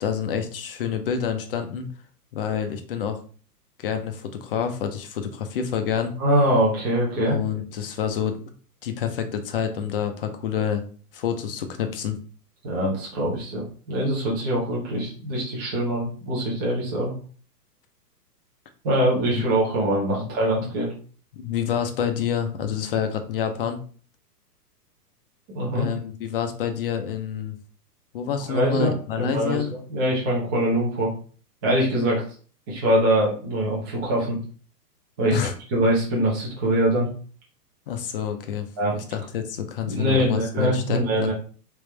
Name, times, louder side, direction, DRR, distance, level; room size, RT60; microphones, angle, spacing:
voice 1, 0.0-1.9 2.3-3.2 3.8-6.1 7.2-8.4 8.8-10.8 11.1-12.2 19.3-19.5 20.2-20.3 21.3-23.8 25.7-27.5 28.1-29.7 35.3-35.5 37.9-38.7 38.9-41.3, left 8 dB, 35° left, 6 dB, 0.5 m, -28 dB
voice 2, 6.2-7.4 12.6-17.1 18.8-20.9 25.5-25.9 28.5-31.1 31.6-32.2 32.7-34.4 35.2-35.4 35.7-37.1 38.8-38.9 39.8-41.3, right 1 dB, 15° right, -5 dB, 0.5 m, -23 dB
3.4 x 3.0 x 3.2 m, 0.42 s
hypercardioid pair, 145°, 48 cm